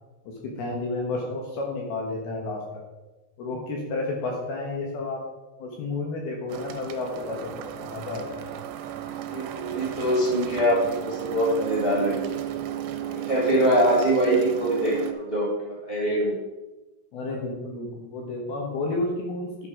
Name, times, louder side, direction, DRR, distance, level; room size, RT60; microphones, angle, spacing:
voice 1, 0.4-2.6 3.4-5.2 5.6-8.5 17.1-19.7, left 2 dB, 65° left, -1 dB, 2.6 m, -31 dB
sound 1, 6.5-15.1, right 11 dB, 85° right, 3.4 m, -34 dB
voice 2, 9.2-12.3 13.1-16.4, right 1 dB, 30° right, -6 dB, 0.8 m, -23 dB
11.0 x 6.5 x 4.9 m, 1.1 s
omnidirectional pair, 5.8 m